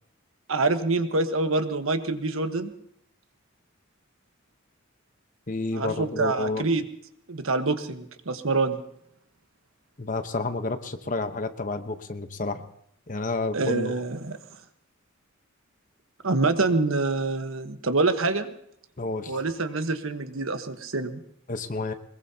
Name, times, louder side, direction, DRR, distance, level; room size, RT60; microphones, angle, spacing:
voice 1, 0.5-2.7 5.7-6.8 7.3-8.8 13.5-14.4 16.2-18.5 19.3-21.2, right 3 dB, 80° right, 8 dB, 1.3 m, -26 dB
voice 2, 5.5-6.7 10.0-12.6 13.1-14.0 19.0-19.4 21.5-21.9, left 3 dB, 40° left, 8 dB, 1.0 m, -30 dB
22.0 x 21.0 x 2.9 m, 0.71 s
head